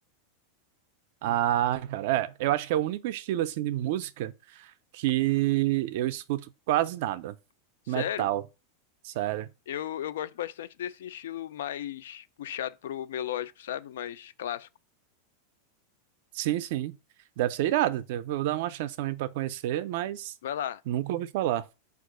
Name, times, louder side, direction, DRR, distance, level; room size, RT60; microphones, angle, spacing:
voice 1, 1.2-7.4 7.9-8.4 9.0-9.5 16.3-17.0 17.4-20.3 20.9-21.6, right 14 dB, 50° right, 0.3 m, -28 dB
voice 2, 7.9-8.3 9.7-14.7 20.4-20.8, left 11 dB, 85° left, 0.3 m, -35 dB
4.5 x 2.4 x 4.7 m
supercardioid pair, 170°, 0 cm